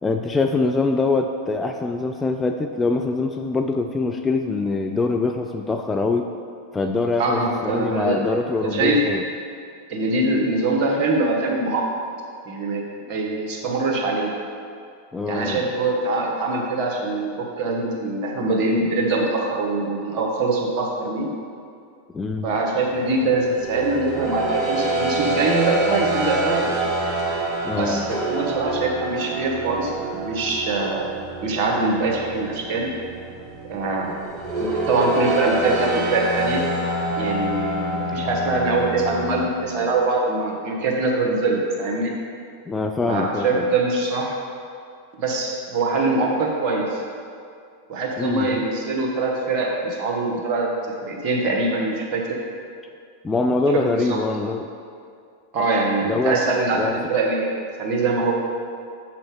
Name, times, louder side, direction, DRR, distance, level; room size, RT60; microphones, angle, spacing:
voice 1, 0.0-6.3 6.7-9.2 15.1-15.6 22.1-22.5 27.6-28.1 42.7-43.7 48.2-48.6 53.2-54.7 56.0-56.4 56.7-56.9, left 3 dB, 15° left, 4 dB, 0.3 m, -24 dB
voice 2, 7.2-8.2 8.6-9.0 9.9-11.8 12.4-14.3 15.3-21.3 22.4-26.7 27.7-31.1 31.4-32.9 33.7-34.2 34.6-36.6 37.2-42.1 43.1-44.4 45.2-47.0 47.9-50.7 51.0-52.2 53.7-54.2 55.5-57.5 57.8-58.3, right 3 dB, 40° right, -1 dB, 1.4 m, -23 dB
sound 1, 23.0-39.5, right 2 dB, 20° right, 1.2 m, -27 dB
6.8 x 6.0 x 4.9 m, 2.3 s
figure-of-eight pair, 90°, 0 cm